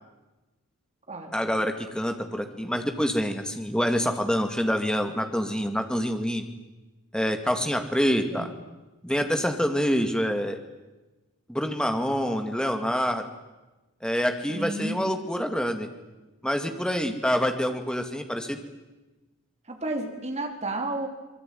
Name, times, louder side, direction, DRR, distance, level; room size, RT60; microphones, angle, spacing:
voice 1, 1.3-6.5 7.1-8.5 9.0-10.6 11.5-13.2 14.0-15.9 16.4-18.6, equal, 5° left, 6 dB, 2.3 m, -26 dB
voice 2, 14.5-15.2 19.7-21.1, right 2 dB, 30° right, 4 dB, 3.9 m, -32 dB
24.5 x 22.0 x 9.4 m, 1.1 s
head